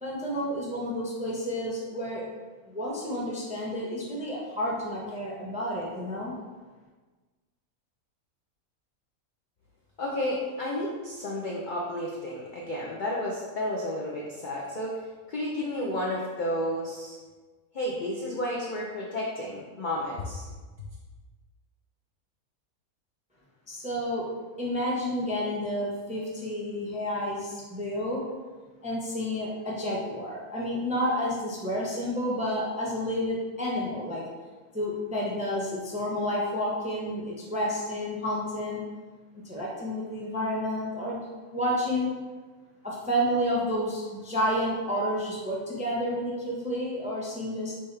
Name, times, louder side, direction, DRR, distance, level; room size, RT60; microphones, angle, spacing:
voice 1, 0.0-2.2 2.7-6.3 23.7-24.3 24.6-28.2 28.8-34.2 34.7-38.8 39.4-41.2 41.5-42.1 42.8-47.7, equal, 10° right, -5 dB, 0.4 m, -30 dB
voice 2, 10.0-17.2 17.7-20.5, left 1 dB, 60° left, -3 dB, 0.5 m, -32 dB
4.2 x 3.6 x 3.2 m, 1.3 s
omnidirectional pair, 1.5 m